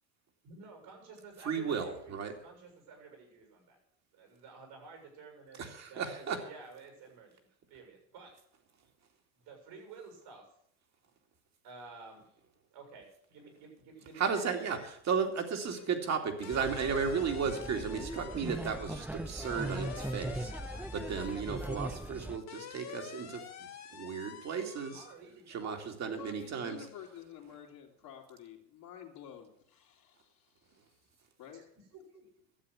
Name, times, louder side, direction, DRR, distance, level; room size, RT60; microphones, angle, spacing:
voice 1, 0.4-3.8 4.1-7.4 7.7-8.3 9.4-10.5 11.6-12.2 12.7-14.5 24.9-26.1 31.5-31.6 31.9-32.3, right 4 dB, 70° right, 3 dB, 7.1 m, -52 dB
voice 2, 1.4-2.3 5.6-6.4 14.2-23.4 23.9-25.0 25.5-26.8, right 6 dB, 45° right, 4 dB, 2.6 m, -34 dB
sound 1, 14.3-14.9 15.3-25.1, left 8 dB, 45° left, 1.5 m, -49 dB
sound 2, 16.5-22.4, right 1 dB, 5° right, 0.5 m, -40 dB
voice 3, 26.2-30.9 31.4-31.6, left 9 dB, 65° left, -6 dB, 2.7 m, -50 dB
12.5 x 8.0 x 8.2 m, 0.69 s
supercardioid pair, 105°, 37 cm